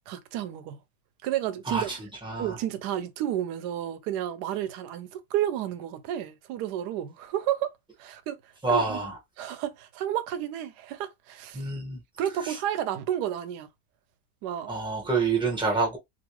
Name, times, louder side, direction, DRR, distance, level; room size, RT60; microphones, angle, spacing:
voice 1, 0.1-0.8 1.2-2.0 2.4-7.7 8.0-9.0 9.4-11.7 12.2-13.7 14.4-14.7, right 11 dB, 75° right, 1.1 m, -31 dB
voice 2, 1.7-2.6 8.6-9.1 11.5-12.0 12.4-12.5 14.7-16.0, right 4 dB, 5° right, 0.5 m, -27 dB
2.9 x 2.6 x 3.0 m
omnidirectional pair, 1.9 m